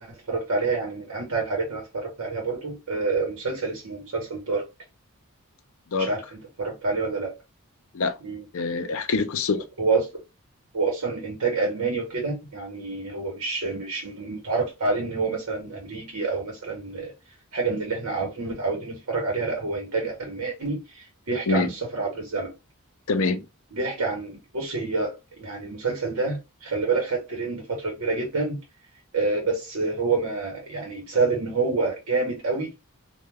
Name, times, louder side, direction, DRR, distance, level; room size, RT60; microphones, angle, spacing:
voice 1, 0.0-4.7 6.0-7.4 8.2-8.5 9.8-10.0 10.7-17.1 17.5-22.5 23.7-28.6 29.1-32.7, right 3 dB, 70° right, 0.9 m, -28 dB
voice 2, 8.5-9.6 21.5-21.7 23.1-23.4, left 4 dB, 65° left, 0.5 m, -25 dB
2.2 x 2.2 x 3.2 m
head